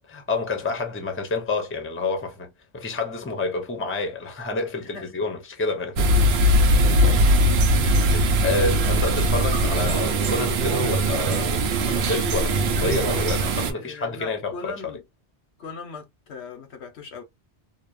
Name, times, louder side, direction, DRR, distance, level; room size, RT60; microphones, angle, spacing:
voice 1, 0.1-6.1 7.8-14.7, left 3 dB, 15° left, 0.5 m, -29 dB
voice 2, 4.8-5.4 6.8-7.3 13.7-15.0 15.6-17.2, left 4 dB, 85° left, 1.1 m, -40 dB
sound 1, 6.0-13.7, right 1 dB, 80° right, 0.8 m, -20 dB
2.8 x 2.0 x 2.3 m
omnidirectional pair, 1.1 m